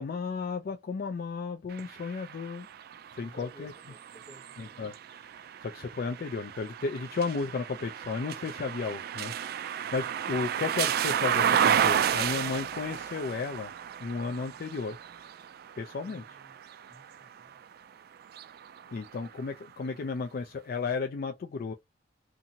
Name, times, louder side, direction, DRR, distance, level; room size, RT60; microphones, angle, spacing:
voice 1, 0.0-2.7 3.1-3.7 4.6-5.3 5.6-9.3 9.6-13.7 14.0-15.0 15.8-16.2 18.9-21.7, left 4 dB, 50° left, 0.3 m, -34 dB
sound 1, 1.7-17.6 18.2-19.4, right 9 dB, 55° right, 0.3 m, -32 dB
voice 2, 3.2-4.8 9.8-9.9 16.0-16.5 16.9-17.6, equal, 30° left, 0.9 m, -53 dB
2.8 x 2.5 x 2.6 m
head